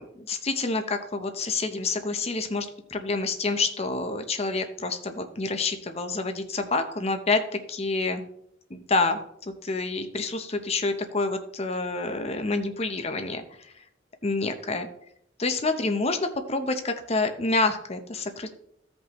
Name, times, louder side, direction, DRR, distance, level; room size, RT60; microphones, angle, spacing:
voice 1, 0.0-8.2 8.7-13.7 14.2-14.9 15.4-18.5, left 3 dB, 35° left, 7 dB, 0.7 m, -28 dB
15.0 x 5.3 x 3.0 m, 0.72 s
head